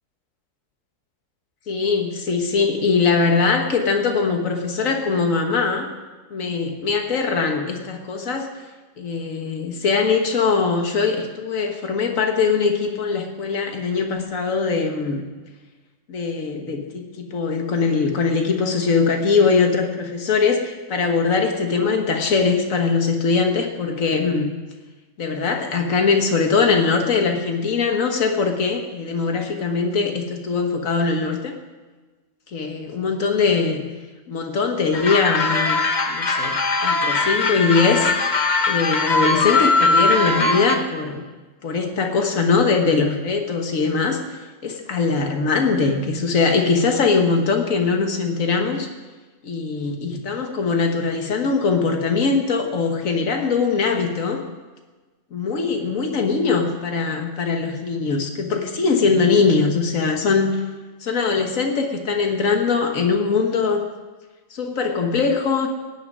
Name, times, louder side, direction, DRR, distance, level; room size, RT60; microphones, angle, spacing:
voice 1, 1.7-5.9 6.3-8.5 9.0-15.3 16.1-24.5 25.2-31.5 32.5-33.8 34.3-35.8 36.1-38.4 38.7-41.2 41.6-48.9 49.4-54.4 55.3-60.6 61.0-63.8 64.5-65.7, left 4 dB, 80° left, 4 dB, 1.8 m, -21 dB
sound 1, 34.9-40.8, left 3 dB, 35° left, 1.1 m, -20 dB
17.0 x 6.7 x 9.5 m, 1.3 s
omnidirectional pair, 1.4 m